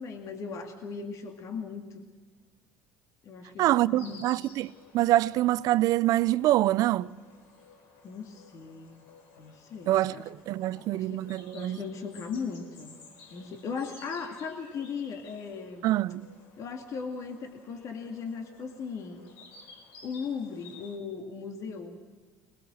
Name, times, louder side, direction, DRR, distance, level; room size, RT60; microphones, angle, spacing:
voice 1, 0.0-2.0 3.2-4.2 8.0-9.1 9.4-10.3 10.8-12.9 13.3-15.9 16.6-19.3 20.0-22.0, left 5 dB, 55° left, 2.3 m, -38 dB
voice 2, 3.6-7.1 9.9-11.8 15.8-16.3, right 15 dB, 65° right, 0.5 m, -25 dB
Insect, 4.0-21.0, left 4 dB, 85° left, 3.4 m, -54 dB
22.0 x 21.0 x 6.4 m
supercardioid pair, 80°, 7 cm